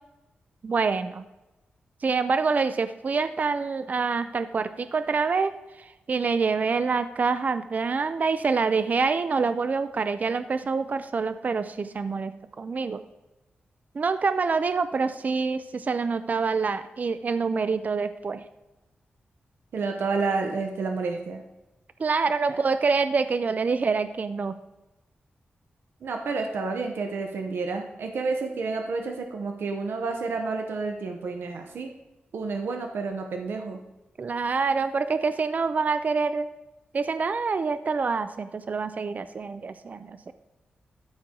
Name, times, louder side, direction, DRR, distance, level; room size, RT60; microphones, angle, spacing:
voice 1, 0.6-1.2 2.0-5.5 5.8-13.0 13.9-18.4 22.0-24.5 34.2-36.5 36.9-40.3, right 4 dB, 45° right, 11 dB, 0.4 m, -26 dB
voice 2, 19.7-21.4 22.4-22.6 26.0-31.9 32.3-33.8, right 4 dB, 85° right, 4 dB, 0.9 m, -30 dB
13.0 x 4.4 x 3.7 m, 1.0 s
wide cardioid pair, 95°, 4 cm